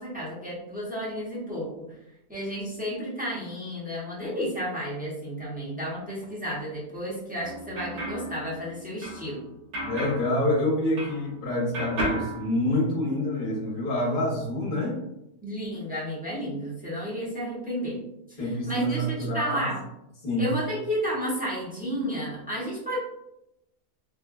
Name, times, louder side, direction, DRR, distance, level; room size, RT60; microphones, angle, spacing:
voice 1, 0.0-2.0 2.3-9.4 15.4-18.0 18.3-19.8 20.4-23.0, equal, 10° right, -8 dB, 0.5 m, -32 dB
sound 1, 7.4-11.4 11.7-13.2, right 1 dB, 85° right, 1.4 m, -35 dB
voice 2, 9.8-15.0 18.4-19.7 20.2-20.5, left 1 dB, 40° left, -4 dB, 1.0 m, -27 dB
3.2 x 2.2 x 2.2 m, 0.85 s
omnidirectional pair, 1.6 m